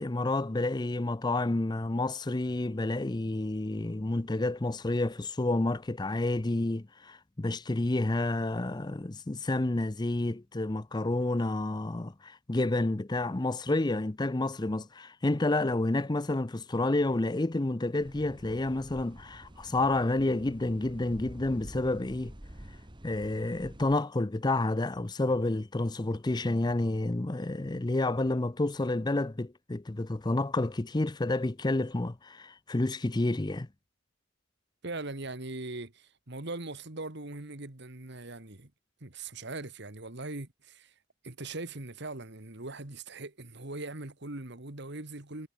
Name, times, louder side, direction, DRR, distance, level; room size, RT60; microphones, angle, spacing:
voice 1, 0.0-22.3 23.0-33.7, left 2 dB, 20° left, 0.6 m, -29 dB
sound 1, 18.0-23.9, right 1 dB, 25° right, 1.9 m, -48 dB
voice 2, 34.8-38.7 39.0-40.9 41.2-45.5, right 2 dB, 60° right, 2.3 m, -40 dB
head